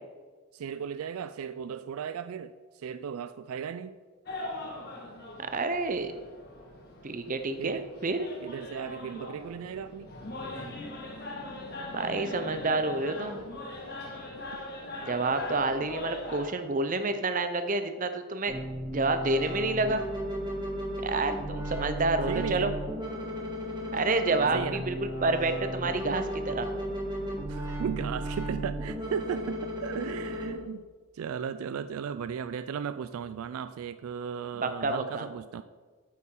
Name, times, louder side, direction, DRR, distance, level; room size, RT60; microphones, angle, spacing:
voice 1, 0.5-4.0 7.6-7.9 8.4-10.1 22.3-22.7 24.4-24.9 27.5-30.9 31.1-35.6, right 7 dB, 75° right, 13 dB, 0.3 m, -36 dB
sound 1, 4.3-16.5, left 2 dB, 45° left, 1.6 m, -41 dB
voice 2, 5.4-6.2 7.0-8.3 11.9-13.4 15.0-18.6 18.9-20.0 21.0-22.7 23.9-26.7 34.6-35.2, right 3 dB, 35° right, 9 dB, 0.6 m, -29 dB
sound 2, 18.5-30.5, equal, 20° right, 1.8 m, -35 dB
8.6 x 8.3 x 3.8 m, 1.4 s
head